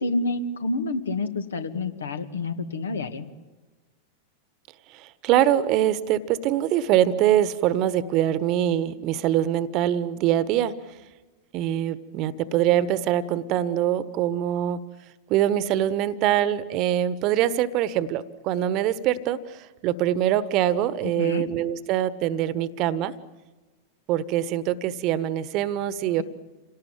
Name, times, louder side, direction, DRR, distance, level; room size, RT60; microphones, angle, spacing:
voice 1, 0.0-3.3 21.0-21.4, left 3 dB, 70° left, 9 dB, 2.1 m, -28 dB
voice 2, 4.9-10.7 11.5-14.8 15.3-23.1 24.1-26.2, right 11 dB, 40° right, 18 dB, 1.3 m, -24 dB
28.0 x 18.5 x 9.2 m, 1.2 s
figure-of-eight pair, 90°, 0 cm